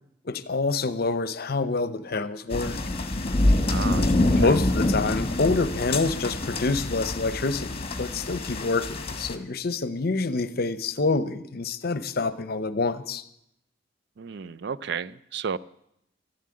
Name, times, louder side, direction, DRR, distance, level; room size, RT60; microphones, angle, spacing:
voice 1, 0.2-2.8 4.3-13.2, left 3 dB, 55° left, 0.7 m, -27 dB
sound 1, 2.5-9.4, left 1 dB, 35° left, 1.3 m, -26 dB
voice 2, 3.7-4.1 14.2-15.6, right 6 dB, 65° right, 0.4 m, -32 dB
13.5 x 7.4 x 9.7 m
head